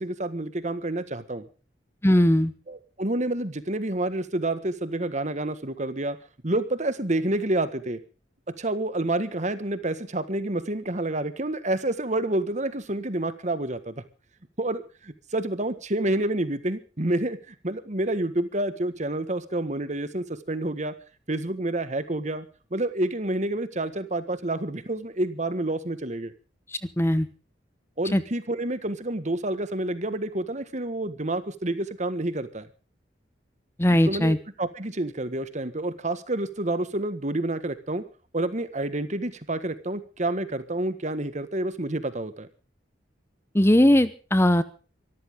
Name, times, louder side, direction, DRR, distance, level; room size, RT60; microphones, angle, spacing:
voice 1, 0.0-1.4 2.7-6.2 6.4-8.0 8.6-13.9 14.6-20.9 21.3-26.3 28.0-32.7 33.9-38.0 38.3-42.5, right 1 dB, 40° right, 12 dB, 1.6 m, -28 dB
voice 2, 2.0-2.5 27.0-27.3 28.1-28.2 33.8-34.4 43.5-44.6, left 1 dB, 15° left, 13 dB, 0.9 m, -19 dB
24.5 x 13.5 x 3.7 m, 0.36 s
head